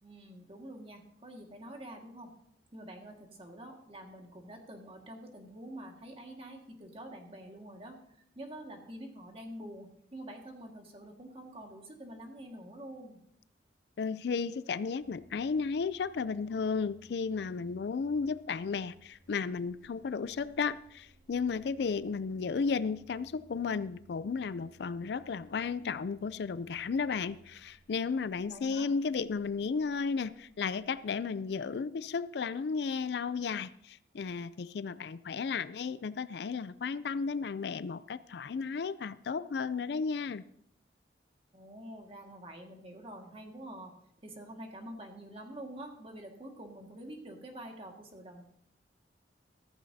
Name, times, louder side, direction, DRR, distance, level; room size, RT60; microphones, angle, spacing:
voice 1, 0.0-2.3 2.7-13.2 22.0-22.1 28.5-28.9 41.5-43.9 44.2-48.5, right 1 dB, 30° right, 1.8 m, -47 dB
voice 2, 14.0-40.4, left 5 dB, 65° left, 0.4 m, -34 dB
sound 1, 15.0-32.7, right 2 dB, 80° right, 5.6 m, -63 dB
14.5 x 14.5 x 2.8 m
head